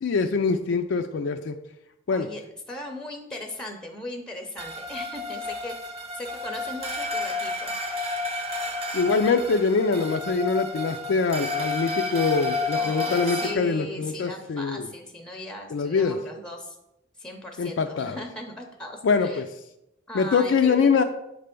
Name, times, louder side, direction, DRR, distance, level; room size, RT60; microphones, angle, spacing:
voice 1, 0.0-1.5 2.1-2.3 8.9-14.9 15.7-16.2 17.6-18.2 19.0-19.5 20.1-21.0, left 4 dB, 75° left, 5 dB, 0.4 m, -24 dB
voice 2, 2.1-2.4 2.7-7.8 12.8-16.8 17.2-19.4 20.1-21.0, left 1 dB, 5° left, 3 dB, 0.6 m, -38 dB
sound 1, 4.6-13.5, left 2 dB, 35° right, 0.7 m, -31 dB
7.4 x 3.3 x 5.1 m, 0.87 s
head